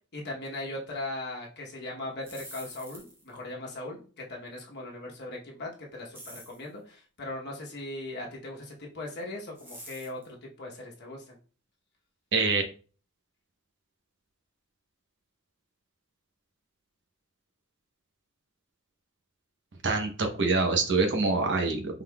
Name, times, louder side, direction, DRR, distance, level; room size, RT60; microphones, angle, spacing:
voice 1, 0.1-11.4, left 2 dB, 50° left, -1 dB, 1.0 m, -39 dB
sound 1, 2.1-3.3 6.1-6.7 9.6-10.3, equal, 10° right, 1.1 m, -46 dB
voice 2, 12.3-12.6 19.8-22.0, right 3 dB, 55° right, 4 dB, 0.9 m, -25 dB
5.4 x 3.7 x 2.3 m, 0.38 s
head